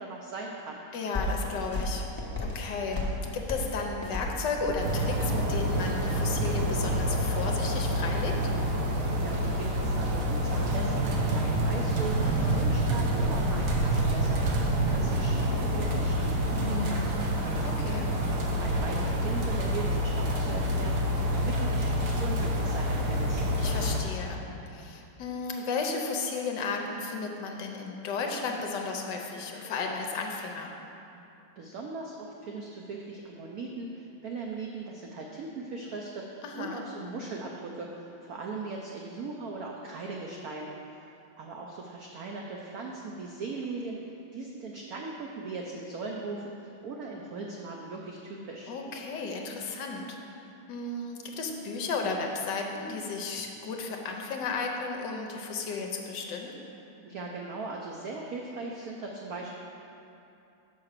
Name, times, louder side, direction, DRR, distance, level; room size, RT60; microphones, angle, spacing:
voice 1, 0.0-0.8 9.1-14.4 14.8-17.7 18.4-21.0 21.3-23.5 31.6-40.7 41.0-41.1 41.4-44.0 44.3-48.7 57.0-59.5, right 3 dB, 80° right, -1 dB, 0.8 m, -39 dB
voice 2, 0.9-2.0 2.4-8.4 12.2-12.6 17.6-18.1 23.6-24.4 24.7-30.7 36.4-36.8 48.7-50.2 50.7-56.5, left 4 dB, 65° left, 2 dB, 1.2 m, -34 dB
sound 1, 1.1-6.1, left 2 dB, 20° left, 0.6 m, -34 dB
sound 2, 4.8-24.0, equal, 55° right, 0.9 m, -27 dB
5.8 x 5.7 x 6.5 m, 2.8 s
omnidirectional pair, 2.3 m